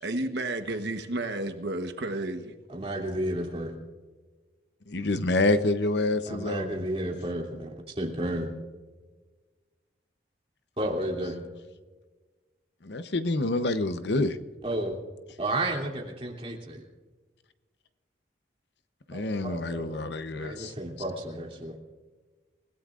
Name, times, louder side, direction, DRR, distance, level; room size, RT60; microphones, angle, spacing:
voice 1, 0.0-2.6, right 2 dB, 70° right, 7 dB, 1.1 m, -32 dB
voice 2, 2.7-3.7 6.3-8.5 10.8-11.4 14.6-15.0 15.4-16.8 19.1-20.0 20.3-21.8, right 1 dB, 30° right, -1 dB, 2.8 m, -32 dB
voice 3, 4.9-6.8 12.8-14.4 19.1-20.7, left 2 dB, 70° left, 10 dB, 0.8 m, -27 dB
28.5 x 17.0 x 2.5 m, 1.3 s
head